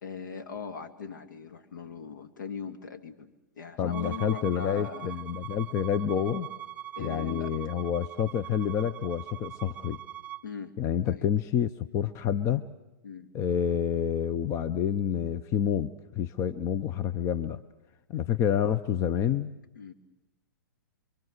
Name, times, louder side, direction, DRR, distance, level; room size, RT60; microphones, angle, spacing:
voice 1, 0.0-3.3 3.6-5.1 7.0-7.5 10.4-10.7 11.0-11.3 13.0-13.3 19.8-19.9, left 6 dB, 70° left, 6 dB, 2.1 m, -40 dB
voice 2, 3.8-6.5 7.0-10.0 10.8-12.6 13.3-17.6 18.1-19.5, left 9 dB, 25° left, 12 dB, 0.8 m, -28 dB
Bowed string instrument, 3.9-10.4, right 13 dB, 15° right, 1.4 m, -42 dB
27.0 x 24.0 x 6.6 m, 0.99 s
hypercardioid pair, 115°, 11 cm